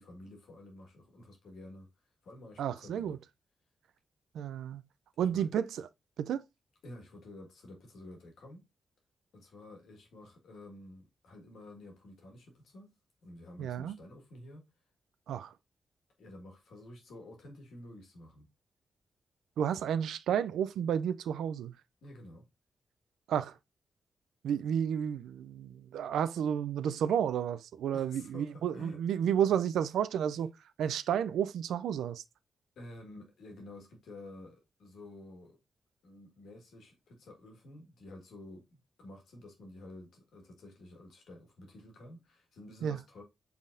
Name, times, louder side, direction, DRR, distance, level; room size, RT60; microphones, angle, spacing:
voice 1, 0.0-3.2 5.3-5.5 6.8-8.7 9.3-12.9 13.2-14.7 16.2-18.5 22.0-22.4 27.9-29.3 32.8-35.6 36.0-43.2, left 1 dB, 80° left, 1.6 m, -51 dB
voice 2, 2.6-3.2 4.3-4.8 5.2-5.9 6.2-6.5 13.6-14.0 15.3-15.5 19.6-21.7 23.3-23.6 24.4-30.5 30.8-32.2 42.8-43.0, right 9 dB, 90° right, 0.3 m, -31 dB
5.4 x 3.5 x 2.5 m
cardioid pair, 55°, 0 cm